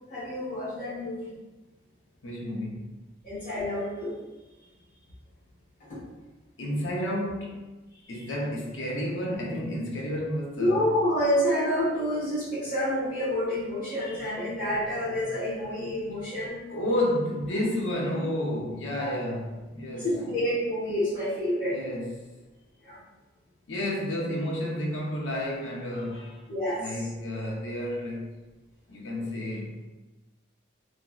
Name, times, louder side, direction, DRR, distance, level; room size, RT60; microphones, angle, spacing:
voice 1, 0.1-1.4 3.2-4.1 5.9-6.0 10.5-16.6 19.0-19.1 20.0-21.8 22.8-23.0 26.5-27.1, equal, 50° left, -10 dB, 1.2 m, -28 dB
voice 2, 2.2-3.1 6.6-10.9 16.7-20.4 21.6-22.3 23.7-26.4 26.8-28.3 28.9-29.9, left 1 dB, 85° left, -2 dB, 0.6 m, -31 dB
3.0 x 2.6 x 2.3 m, 1.1 s
head